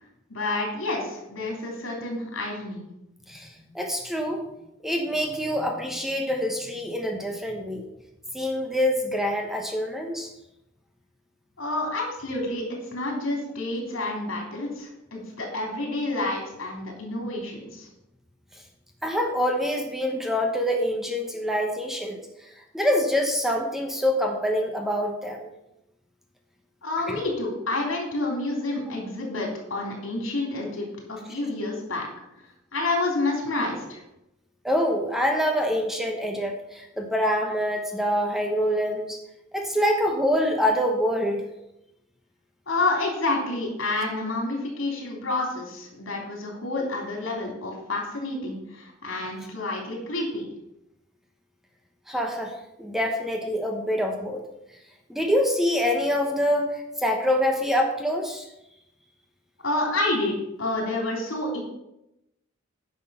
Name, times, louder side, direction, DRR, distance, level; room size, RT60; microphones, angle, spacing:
voice 1, 0.3-2.8 11.6-12.6 12.9-17.9 26.8-32.1 32.7-34.0 42.7-50.5 59.6-61.6, left 2 dB, 75° left, 0 dB, 3.3 m, -29 dB
voice 2, 3.7-4.4 4.8-7.9 8.3-10.3 19.0-22.2 22.7-25.5 27.1-27.2 34.6-39.2 39.5-41.5 52.1-54.4 55.1-58.5, equal, ahead, 3 dB, 1.0 m, -25 dB
9.8 x 6.1 x 5.7 m, 0.88 s
head